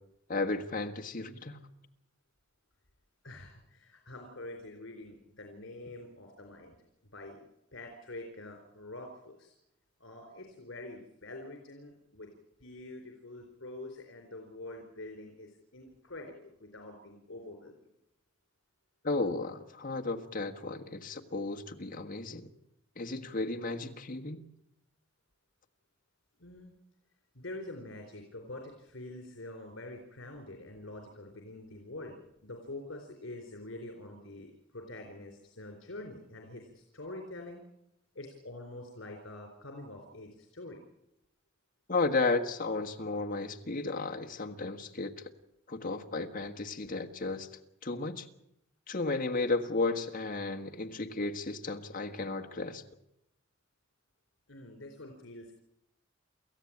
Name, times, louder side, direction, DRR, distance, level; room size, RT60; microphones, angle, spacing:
voice 1, 0.3-1.7 19.0-22.5 23.0-24.4 41.9-45.3 45.7-47.5 47.8-48.3 48.9-52.8, left 3 dB, 45° left, 5 dB, 1.6 m, -33 dB
voice 2, 3.2-6.8 7.0-7.4 7.7-9.5 10.0-12.3 12.6-17.7 26.4-26.7 27.3-32.2 32.4-37.6 38.1-40.8 54.5-55.5, left 2 dB, 70° left, 3 dB, 4.1 m, -46 dB
28.5 x 14.5 x 8.7 m, 0.84 s
head